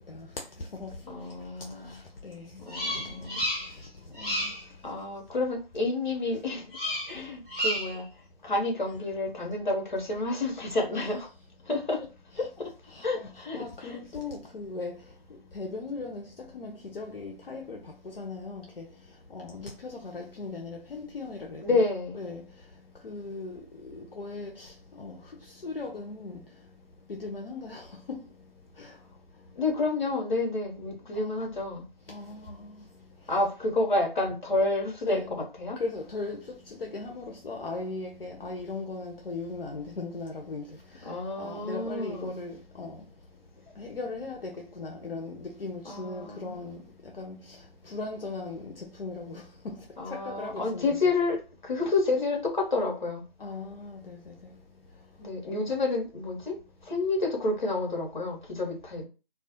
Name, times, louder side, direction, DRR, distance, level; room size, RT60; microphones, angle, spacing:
voice 1, 0.0-4.5 4.8-4.9 7.1-7.3 10.9-11.3 11.7-21.9 22.1-26.7 27.1-28.5 28.7-29.0 29.4-29.6 31.1-31.4 32.1-33.4 35.1-35.4 35.8-43.1 43.7-51.1 53.4-54.6 54.9-55.1, left 3 dB, 75° left, 0.5 m, -39 dB
voice 2, 1.1-2.0 2.6-3.5 4.8-6.7 7.1-8.1 8.4-11.3 11.7-12.0 12.6-12.7 13.0-14.0 21.6-22.2 29.5-31.9 33.3-35.8 41.0-42.4 45.9-46.6 50.0-53.2 55.2-56.6 56.8-59.0, left 2 dB, 50° left, 0.9 m, -29 dB
Bird vocalization bird call bird song, 2.7-3.9 4.1-4.7 6.7-7.2 7.5-8.0, equal, 5° right, 1.4 m, -31 dB
2.3 x 2.1 x 2.7 m
figure-of-eight pair, 160°, 29 cm